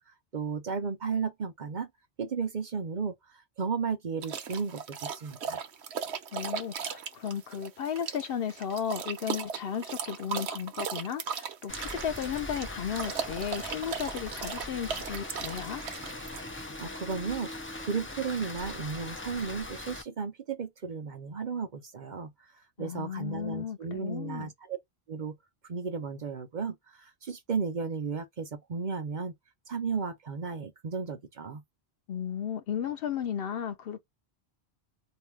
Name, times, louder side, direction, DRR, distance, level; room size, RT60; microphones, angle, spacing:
voice 1, 0.3-1.9 2.2-3.1 3.6-5.6 16.8-22.3 22.8-24.8 25.1-25.4 25.7-29.3 29.7-31.6, right 5 dB, 50° right, 0.7 m, -34 dB
sound 1, 4.2-16.7, right 6 dB, 85° right, 0.9 m, -37 dB
voice 2, 6.3-15.8 22.8-24.5 32.1-34.1, left 8 dB, 65° left, 0.7 m, -34 dB
Rain, 11.7-20.0, left 2 dB, 15° left, 0.4 m, -40 dB
2.7 x 2.3 x 3.2 m
omnidirectional pair, 1.1 m